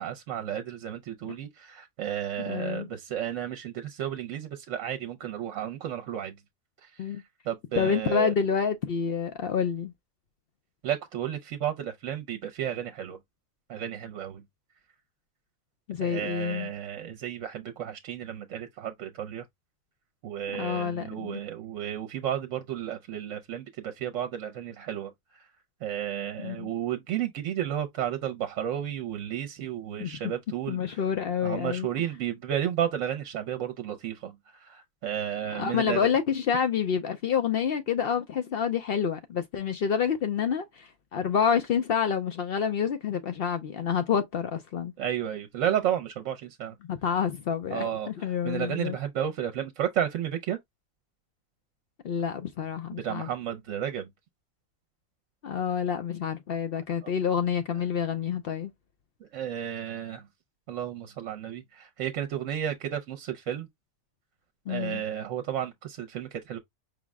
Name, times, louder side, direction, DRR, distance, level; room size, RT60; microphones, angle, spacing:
voice 1, 0.0-6.4 6.8-7.0 7.5-8.3 10.8-13.2 13.7-14.4 16.0-19.4 20.2-25.1 25.8-31.0 31.4-36.1 45.0-46.7 47.7-50.6 53.0-54.1 57.0-57.1 59.3-60.3 60.7-63.7 64.7-66.6, right 10 dB, 70° right, 0.9 m, -32 dB
voice 2, 2.5-2.9 7.0-7.2 7.8-9.9 15.9-16.7 20.5-21.4 26.4-26.7 30.0-30.1 30.7-31.9 35.5-44.9 46.9-49.0 52.0-53.3 55.4-58.7 64.7-65.0, left 7 dB, 65° left, 0.6 m, -28 dB
5.1 x 2.1 x 3.4 m
omnidirectional pair, 1.4 m